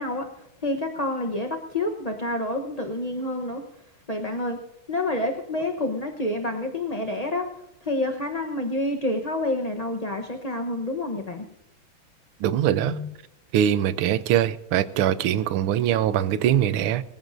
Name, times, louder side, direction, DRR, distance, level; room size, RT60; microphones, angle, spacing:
voice 1, 0.0-3.6 4.1-4.6 4.9-7.5 7.8-11.5 12.8-13.1, left 1 dB, 35° left, 0.6 m, -28 dB
voice 2, 12.4-13.0 13.5-17.0, right 10 dB, 85° right, 1.6 m, -22 dB
23.5 x 15.0 x 2.6 m
omnidirectional pair, 2.3 m